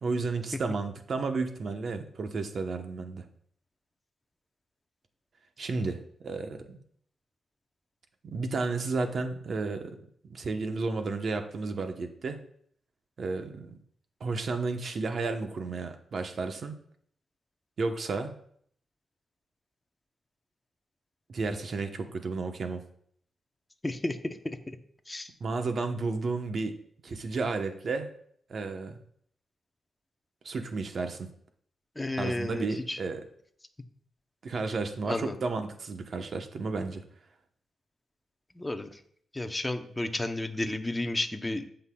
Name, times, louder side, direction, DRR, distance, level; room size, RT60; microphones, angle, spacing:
voice 1, 0.0-3.3 5.6-6.8 8.2-10.0 10.3-12.4 13.2-13.8 14.2-16.8 17.8-18.3 21.3-22.9 25.4-26.7 27.0-28.1 28.5-29.0 30.4-31.3 32.2-33.2 34.4-37.0, right 3 dB, 50° right, 6 dB, 0.9 m, -32 dB
voice 2, 23.8-24.6 25.1-25.3 32.0-33.0 35.1-35.3 38.5-39.0 39.3-41.6, left 2 dB, 15° left, 6 dB, 0.7 m, -32 dB
16.5 x 5.6 x 2.3 m, 0.62 s
wide cardioid pair, 135°, 0 cm